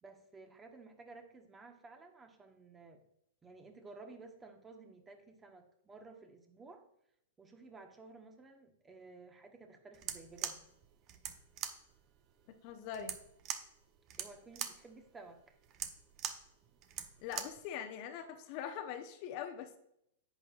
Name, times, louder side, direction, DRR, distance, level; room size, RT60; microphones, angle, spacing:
voice 1, 0.0-3.0 3.4-6.9 7.4-10.6 14.2-15.6, right 3 dB, 15° right, 5 dB, 1.3 m, -54 dB
sound 1, 9.9-17.7, right 9 dB, 40° right, 0.8 m, -43 dB
voice 2, 12.6-13.2 17.2-19.8, left 8 dB, 45° left, 6 dB, 0.9 m, -42 dB
10.5 x 8.0 x 2.5 m, 0.75 s
hypercardioid pair, 105°, 0 cm